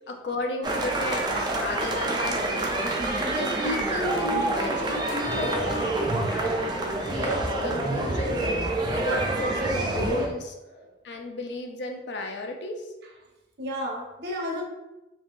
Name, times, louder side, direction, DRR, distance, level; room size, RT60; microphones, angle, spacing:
voice 1, 0.1-2.7 3.2-8.5 8.9-10.6 11.0-12.9, left 2 dB, 60° left, 3 dB, 0.5 m, -34 dB
sound 1, 0.6-10.3, right 2 dB, 25° right, 0.4 m, -27 dB
voice 2, 13.6-14.6, equal, 60° right, 0 dB, 0.7 m, -34 dB
3.3 x 3.0 x 2.5 m, 1.0 s
head